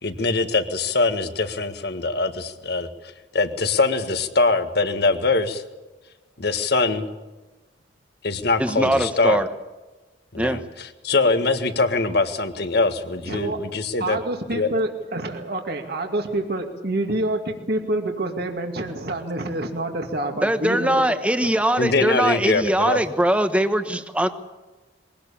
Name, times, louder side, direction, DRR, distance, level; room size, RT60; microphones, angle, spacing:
voice 1, 0.0-2.9 3.3-5.6 6.4-7.1 8.2-9.4 10.3-14.2 14.5-14.7 21.8-23.0, left 3 dB, 60° left, 9 dB, 1.7 m, -23 dB
voice 2, 8.6-9.5 10.4-10.6 20.2-24.3, right 1 dB, 5° right, 8 dB, 1.2 m, -21 dB
voice 3, 13.3-13.6 14.0-21.2, right 1 dB, 55° right, 3 dB, 2.4 m, -27 dB
22.5 x 18.0 x 8.7 m, 1.2 s
head